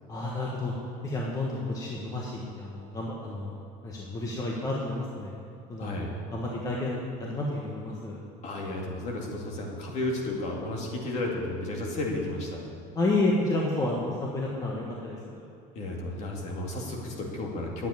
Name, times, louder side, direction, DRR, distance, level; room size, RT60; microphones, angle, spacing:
voice 1, 0.1-0.7 1.0-3.5 3.8-5.3 5.7-8.2 12.9-15.4, left 2 dB, 20° left, -3 dB, 1.3 m, -30 dB
voice 2, 5.8-6.2 8.4-12.7 15.7-17.9, left 2 dB, 45° left, 0 dB, 2.3 m, -33 dB
9.5 x 8.0 x 9.4 m, 2.5 s
cardioid pair, 155°, 17 cm